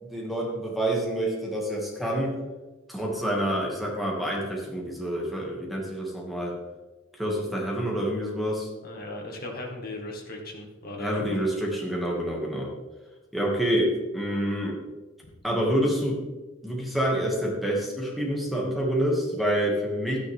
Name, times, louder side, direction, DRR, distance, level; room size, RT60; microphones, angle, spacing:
voice 1, 0.0-2.3 2.9-6.5 7.1-8.7 11.0-12.7 13.3-14.8 15.4-16.2 16.6-20.2, equal, ahead, -3 dB, 2.2 m, -27 dB
voice 2, 8.8-11.2, left 2 dB, 50° left, 1 dB, 2.0 m, -37 dB
12.5 x 10.0 x 3.6 m, 1.2 s
head